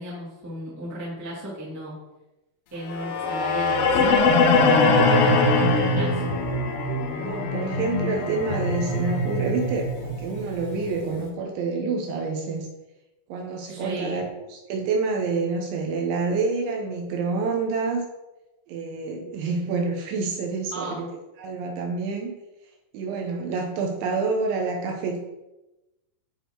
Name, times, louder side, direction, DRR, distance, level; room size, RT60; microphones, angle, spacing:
voice 1, 0.0-1.9 2.7-6.2 13.7-14.2 20.7-21.0, equal, 10° right, -7 dB, 1.1 m, -35 dB
sound 1, 2.9-11.0, left 3 dB, 80° left, 3.4 m, -22 dB
voice 2, 7.2-12.7 13.3-18.0 18.7-21.1 21.4-22.3 22.9-25.2, right 4 dB, 75° right, 1 dB, 3.0 m, -27 dB
10.5 x 4.2 x 4.6 m, 0.98 s
omnidirectional pair, 5.9 m